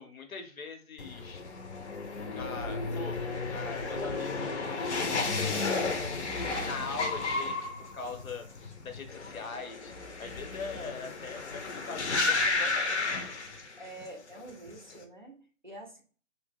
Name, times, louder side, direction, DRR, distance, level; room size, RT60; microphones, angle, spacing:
voice 1, 0.0-1.4 2.3-3.2 3.5-6.3 6.6-9.9 10.2-13.3, left 4 dB, 90° left, 6 dB, 0.8 m, -41 dB
abrupt stopping car on wet ground, 1.0-14.1 14.4-14.9, left 3 dB, 55° left, 0.6 m, -33 dB
voice 2, 13.8-16.0, right 2 dB, 35° right, 2 dB, 0.5 m, -47 dB
2.8 x 2.1 x 3.4 m, 0.40 s
hypercardioid pair, 165°, 41 cm